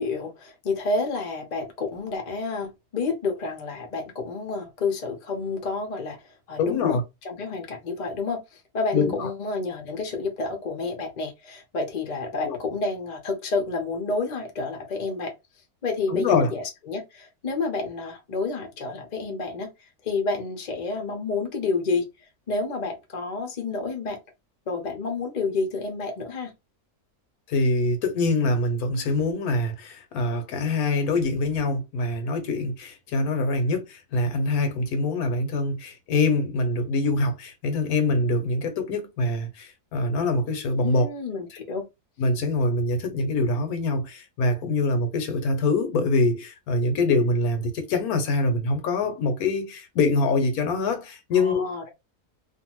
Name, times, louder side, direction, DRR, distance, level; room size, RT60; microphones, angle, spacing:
voice 1, 0.0-7.0 7.2-15.3 15.8-19.7 20.0-22.0 22.5-24.2 24.7-26.5 40.8-41.8 51.3-51.9, left 3 dB, 40° left, 0.6 m, -29 dB
voice 2, 6.6-7.0 8.9-9.3 12.4-12.6 16.1-16.5 27.5-41.1 42.2-51.6, left 2 dB, 75° left, 1.2 m, -24 dB
2.6 x 2.4 x 2.9 m
omnidirectional pair, 1.6 m